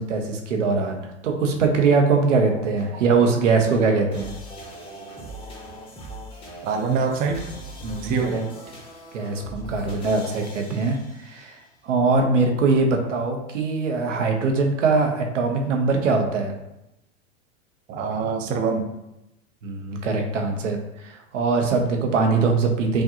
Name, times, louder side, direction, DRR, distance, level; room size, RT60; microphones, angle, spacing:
voice 1, 0.0-4.3 7.8-8.4 9.1-11.0 11.3-11.6 11.8-16.5 19.6-20.8 21.0-23.0, right 4 dB, 75° right, 3 dB, 0.9 m, -22 dB
sound 1, 2.3-11.5, right 1 dB, 15° left, 1.2 m, -41 dB
voice 2, 6.6-7.5 8.0-8.4 17.9-18.9, right 5 dB, 25° right, 4 dB, 0.4 m, -24 dB
4.8 x 2.5 x 2.8 m, 0.87 s
hypercardioid pair, 100°, 37 cm